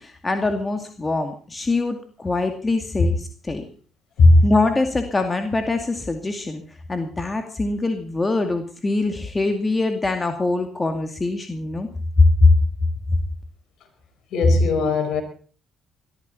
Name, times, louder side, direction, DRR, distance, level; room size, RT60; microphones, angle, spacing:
voice 1, 0.0-3.6 4.4-6.6 6.9-11.9 12.2-12.5, left 3 dB, 25° left, 6 dB, 2.3 m, -22 dB
voice 2, 14.3-15.2, left 2 dB, 60° left, 7 dB, 5.1 m, -15 dB
20.5 x 13.0 x 4.2 m, 0.40 s
hypercardioid pair, 50°, 0 cm